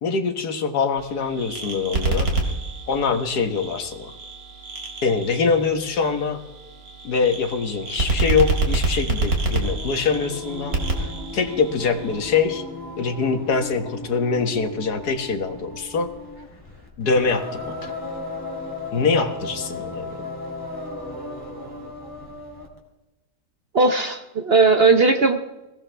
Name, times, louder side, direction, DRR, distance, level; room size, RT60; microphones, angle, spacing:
voice 1, 0.0-2.3 2.9-4.1 5.0-6.4 7.0-12.6 13.0-16.1 17.0-17.9 18.9-20.2, left 5 dB, 70° left, 7 dB, 1.9 m, -24 dB
sound 1, 1.0-12.2, right 3 dB, 60° right, 3.0 m, -28 dB
Singing, 9.6-22.8, left 2 dB, 10° left, 3.4 m, -36 dB
voice 2, 23.7-25.4, right 3 dB, 45° right, 6 dB, 0.9 m, -17 dB
21.5 x 17.5 x 3.4 m, 1.0 s
omnidirectional pair, 1.8 m